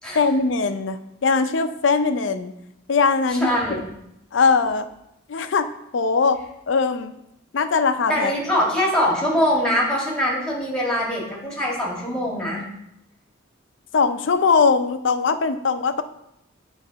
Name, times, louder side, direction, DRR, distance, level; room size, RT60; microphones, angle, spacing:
voice 1, 0.1-2.5 2.9-3.5 4.3-4.9 5.3-7.1 7.5-8.3 13.9-16.0, left 4 dB, 60° left, 9 dB, 0.5 m, -21 dB
voice 2, 3.3-3.8 8.1-12.6, equal, 5° left, -4 dB, 1.6 m, -23 dB
8.6 x 3.1 x 5.0 m, 0.81 s
head